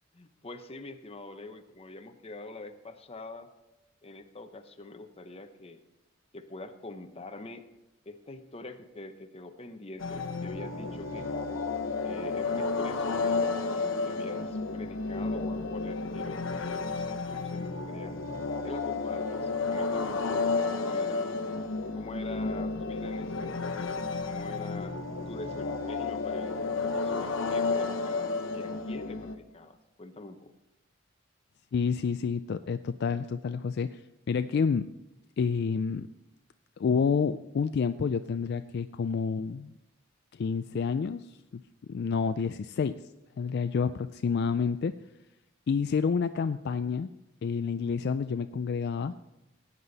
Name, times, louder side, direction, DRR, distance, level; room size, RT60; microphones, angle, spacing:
voice 1, 0.1-3.5 4.0-5.8 6.3-7.6 8.1-11.4 12.0-18.2 18.6-21.5 21.9-25.0 25.3-30.5, left 2 dB, 30° left, 7 dB, 0.8 m, -44 dB
sound 1, 10.0-29.4, left 4 dB, 80° left, 0.9 m, -32 dB
voice 2, 31.7-34.0 34.3-34.9 35.4-36.1 36.8-39.7 40.3-41.6 41.9-42.9 43.4-44.9 45.7-47.1 47.4-49.1, left 5 dB, 55° left, 10 dB, 0.3 m, -29 dB
16.5 x 9.6 x 4.0 m, 0.94 s
head